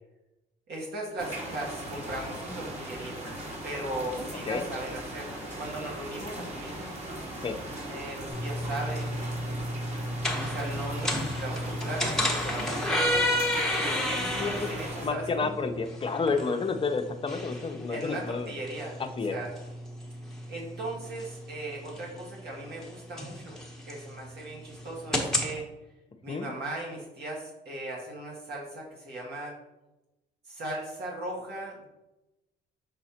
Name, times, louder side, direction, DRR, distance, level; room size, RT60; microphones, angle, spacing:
voice 1, 0.7-3.4 3.6-5.3 5.6-6.9 7.6-9.7 10.4-13.3 13.8-15.6 17.9-19.0 19.3-19.5 20.5-23.6 23.8-25.6 26.2-29.5 30.5-31.8, right 1 dB, 60° right, -3 dB, 1.8 m, -38 dB
sound 1, 1.2-15.1, right 1 dB, 35° right, 2.3 m, -39 dB
sound 2, 8.3-25.5, left 1 dB, 5° left, 1.2 m, -32 dB
voice 2, 15.0-18.5 19.2-19.4 26.3-26.5, left 4 dB, 30° left, 5 dB, 0.8 m, -30 dB
6.5 x 3.9 x 4.4 m, 0.99 s
cardioid pair, 100°, 19 cm